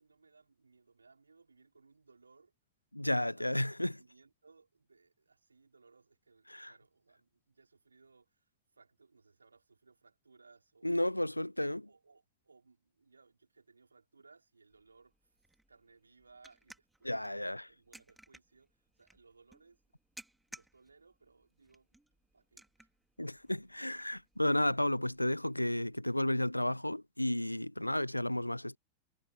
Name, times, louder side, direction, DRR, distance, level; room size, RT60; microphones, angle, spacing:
voice 1, 0.0-2.5 3.0-3.6 4.0-11.0 11.9-19.8 20.5-22.0 22.3-22.9 24.7-24.8, right 4 dB, 80° right, 5.5 m, -64 dB
voice 2, 2.9-4.0 6.5-6.7 10.8-11.9 17.0-17.7 23.2-28.8, left 1 dB, 85° left, 0.6 m, -32 dB
sound 1, 14.7-26.0, right 1 dB, 5° right, 4.5 m, -60 dB
figure-of-eight pair, 90°, 0 cm